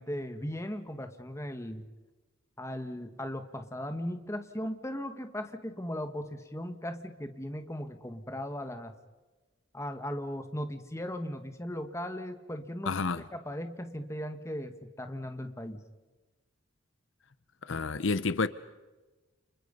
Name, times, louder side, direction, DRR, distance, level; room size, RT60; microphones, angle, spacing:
voice 1, 0.0-1.9 2.6-8.9 9.7-13.0 13.3-15.8, equal, 15° left, 1.7 m, -37 dB
voice 2, 12.9-13.2 17.6-18.5, left 4 dB, 65° left, 0.8 m, -29 dB
30.0 x 29.5 x 5.5 m
head